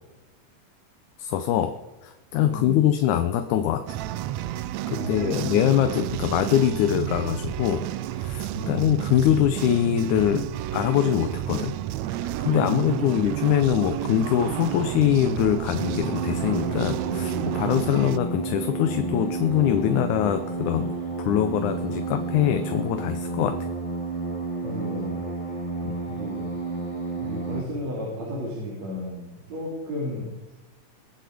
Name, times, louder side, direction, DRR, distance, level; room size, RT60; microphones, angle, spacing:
voice 1, 1.2-1.7 2.0-3.8 4.9-7.9 8.2-11.7 12.2-20.9 21.2-23.6 25.8-26.0, left 11 dB, 80° left, 8 dB, 2.2 m, -23 dB
voice 2, 2.4-2.8 4.9-5.5 8.5-8.8 12.4-13.2 24.6-25.2 26.1-26.5 27.1-30.3, left 1 dB, 60° right, -4 dB, 4.2 m, -33 dB
sound 1, 3.9-18.2, right 13 dB, 75° right, 1.8 m, -31 dB
sound 2, 15.8-27.6, right 3 dB, 20° left, 0.9 m, -31 dB
23.0 x 8.1 x 5.1 m, 1.1 s
omnidirectional pair, 3.5 m